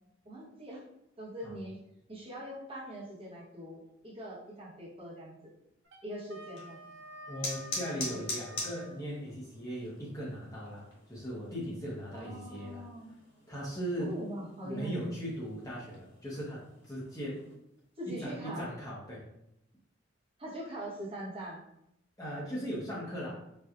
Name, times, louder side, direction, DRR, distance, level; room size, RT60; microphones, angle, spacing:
voice 1, 0.2-0.8 1.2-1.8 2.1-5.3 6.0-6.8 8.1-8.2 12.1-13.2 14.0-14.9 18.0-18.7 20.4-21.6, right 1 dB, 30° right, -7 dB, 1.1 m, -42 dB
Wind instrument woodwind instrument, 5.8-8.9, equal, 75° right, 0.6 m, -49 dB
sound 1, 6.4-17.5, left 2 dB, 85° left, 1.3 m, -45 dB
voice 2, 7.3-12.9 13.5-14.1 14.6-17.4 18.1-19.2 22.2-23.4, equal, 20° left, -6 dB, 0.8 m, -38 dB
4.3 x 2.3 x 2.4 m, 0.80 s
head